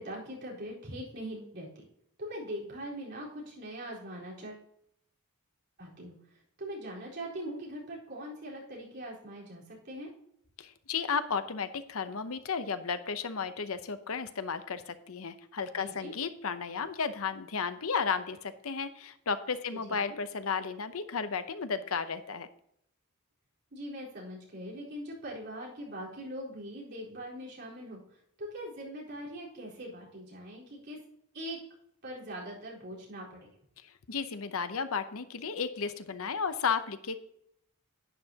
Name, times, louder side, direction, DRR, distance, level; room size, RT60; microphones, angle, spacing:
voice 1, 0.0-1.8 2.2-4.7 5.8-6.1 6.6-10.1 15.8-16.1 20.1-20.2 23.7-28.0 28.4-31.0 31.3-31.6 32.0-33.5, equal, 50° right, -4 dB, 4.3 m, -41 dB
voice 2, 10.6-22.5 33.8-37.2, left 5 dB, 70° left, 11 dB, 0.8 m, -33 dB
11.0 x 10.0 x 2.9 m, 0.73 s
head